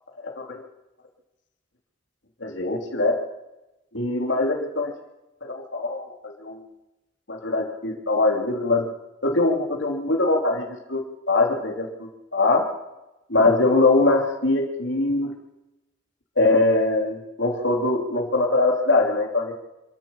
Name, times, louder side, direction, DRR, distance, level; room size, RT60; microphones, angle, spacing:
voice 1, 0.2-0.6 2.4-3.2 3.9-4.9 5.4-6.6 7.3-8.8 9.2-12.7 13.3-15.3 16.4-19.5, left 2 dB, 70° left, 1 dB, 3.4 m, -22 dB
27.0 x 13.5 x 7.3 m, 0.97 s
head